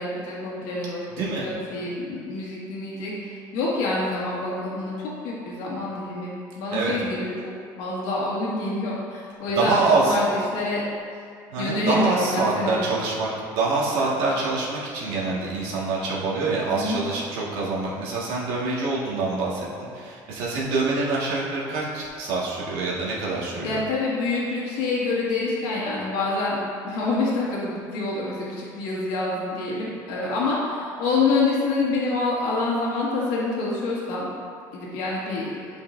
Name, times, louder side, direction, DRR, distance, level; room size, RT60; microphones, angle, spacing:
voice 1, 0.0-7.5 7.8-10.8 11.6-12.9 16.7-17.0 23.6-26.6 26.8-34.3 34.7-35.6, left 3 dB, 90° left, -6 dB, 1.8 m, -27 dB
voice 2, 9.6-10.2 11.5-19.7 19.9-23.8, right 3 dB, 85° right, -5 dB, 1.8 m, -25 dB
11.0 x 5.3 x 2.6 m, 2.3 s
cardioid pair, 145°, 9 cm